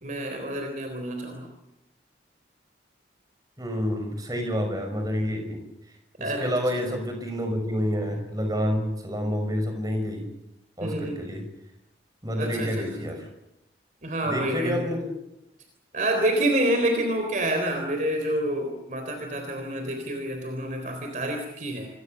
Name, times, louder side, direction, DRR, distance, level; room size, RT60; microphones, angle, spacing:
voice 1, 0.0-1.5 6.2-6.6 6.8-7.0 10.8-11.2 12.4-12.8 14.0-14.9 15.9-21.9, right 1 dB, 40° right, 4 dB, 3.8 m, -28 dB
voice 2, 3.6-5.6 6.2-10.3 10.8-11.4 12.2-13.3 14.2-15.1, equal, 20° right, 4 dB, 5.9 m, -28 dB
27.5 x 23.0 x 6.8 m, 0.86 s
head